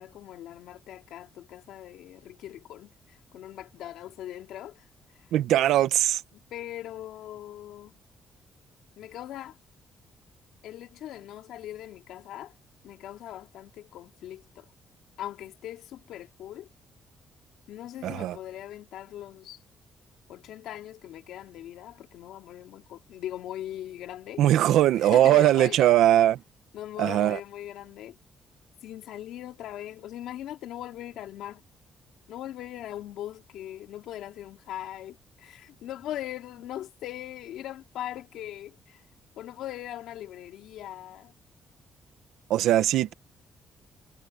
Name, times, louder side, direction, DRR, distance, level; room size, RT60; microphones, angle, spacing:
voice 1, 0.0-4.9 5.2-5.3 6.5-7.9 9.0-9.6 10.6-12.5 12.8-14.7 15.2-16.7 17.7-19.6 20.3-24.4 24.9-25.9 26.7-28.2 28.8-31.6 32.3-39.0 39.4-41.3, left 12 dB, 85° left, 2.9 m, -40 dB
voice 2, 5.3-6.2 18.0-18.4 24.4-26.4 27.0-27.4 42.5-43.1, right 13 dB, 85° right, 1.2 m, -20 dB
cardioid pair, 90°, 0 cm